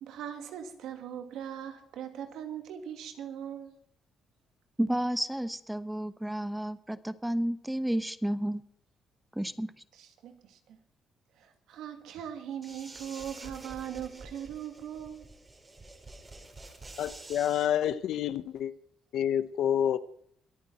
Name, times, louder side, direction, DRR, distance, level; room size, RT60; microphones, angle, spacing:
voice 1, 0.0-3.8 9.9-10.8 11.4-15.3, right 9 dB, 85° right, 2.4 m, -40 dB
voice 2, 4.8-8.6 9.4-9.7, right 1 dB, 5° right, 1.1 m, -31 dB
sound 1, 12.6-17.7, right 2 dB, 25° right, 4.0 m, -48 dB
voice 3, 17.0-18.7 19.1-20.0, left 10 dB, 80° left, 1.0 m, -28 dB
23.5 x 9.1 x 4.3 m
cardioid pair, 90°, 0 cm